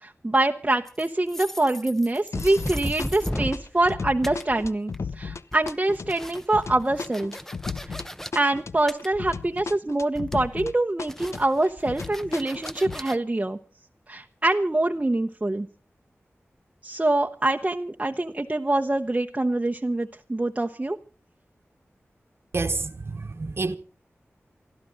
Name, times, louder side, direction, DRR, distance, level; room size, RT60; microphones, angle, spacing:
voice 1, 0.0-4.9 5.2-7.3 7.9-8.0 8.3-13.6 14.1-15.7 16.8-21.0, right 2 dB, 25° right, 0.9 m, -25 dB
sound 1, 0.9-4.0 4.2-5.1 5.4-8.3 8.9-9.8 10.0-10.6 11.1-13.2, left 1 dB, 10° left, 0.7 m, -35 dB
sound 2, 2.3-2.7 3.0-10.7 11.0-13.0, left 4 dB, 80° left, 0.7 m, -35 dB
voice 2, 22.5-23.8, right 3 dB, 60° right, 1.2 m, -28 dB
28.5 x 12.0 x 3.9 m
wide cardioid pair, 65°, 5 cm